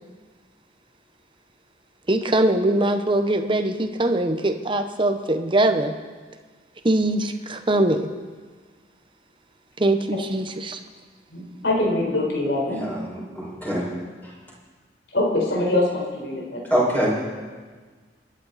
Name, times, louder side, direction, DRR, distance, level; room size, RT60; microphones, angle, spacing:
voice 1, 2.1-5.9 6.8-8.1 9.8-10.8, right 1 dB, 30° right, 7 dB, 1.0 m, -22 dB
voice 2, 11.3-12.9 15.1-16.8, left 2 dB, 75° left, -2 dB, 4.4 m, -24 dB
voice 3, 12.7-13.9 14.2-14.3 16.7-17.3, equal, 10° left, -6 dB, 5.5 m, -24 dB
28.5 x 11.0 x 4.2 m, 1.5 s
head